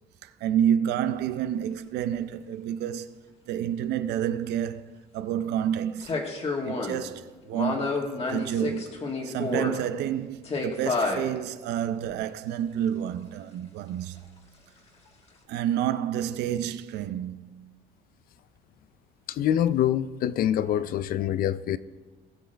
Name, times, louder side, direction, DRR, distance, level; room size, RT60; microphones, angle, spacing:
voice 1, 0.2-3.1 3.5-6.2 6.6-9.0 9.2-14.2 15.5-17.7 20.7-20.8, right 10 dB, 80° right, 0.6 m, -29 dB
sound 1, 1.1-1.2 6.0-7.0 7.5-9.8 10.4-11.2 12.0-12.1, left 3 dB, 35° left, 1.8 m, -29 dB
voice 2, 19.3-21.8, left 10 dB, 60° left, 0.5 m, -25 dB
19.0 x 6.4 x 3.4 m
cardioid pair, 110°, 17 cm